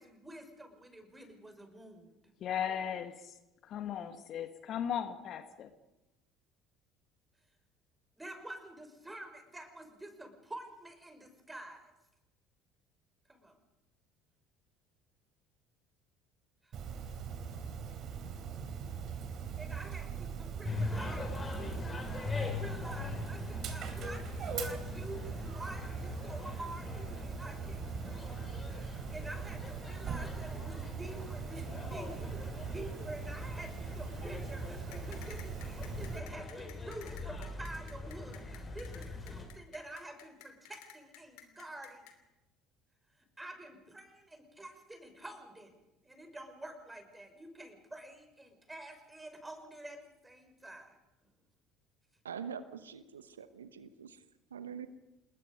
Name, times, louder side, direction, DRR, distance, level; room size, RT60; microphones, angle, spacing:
voice 1, 0.0-2.2 8.2-11.9 13.3-13.6 16.6-16.7 19.6-22.0 22.5-28.4 28.6-42.1 43.2-45.7 46.0-51.0, right 1 dB, 10° right, 6 dB, 5.6 m, -48 dB
voice 2, 2.4-3.4 3.6-5.7, left 9 dB, 50° left, 9 dB, 1.9 m, -37 dB
Dog, 16.7-36.2, right 7 dB, 45° right, 3.6 m, -41 dB
sound 1, 20.6-39.4, left 3 dB, 25° left, 5.8 m, -42 dB
sound 2, 34.9-42.1, left 12 dB, 65° left, 2.9 m, -53 dB
voice 3, 52.2-54.2 54.5-54.9, right 7 dB, 80° right, 12 dB, 1.0 m, -44 dB
28.5 x 20.5 x 5.4 m, 0.97 s
figure-of-eight pair, 60°, 0 cm